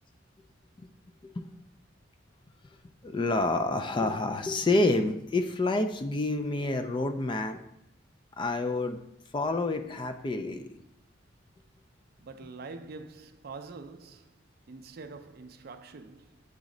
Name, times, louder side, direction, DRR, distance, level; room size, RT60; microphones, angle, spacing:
voice 1, 3.0-7.6 8.4-9.0 9.3-10.7, left 2 dB, 25° left, 0.3 m, -28 dB
voice 2, 12.2-14.4 14.7-16.4, right 4 dB, 50° right, 0.4 m, -45 dB
8.1 x 3.1 x 3.8 m
head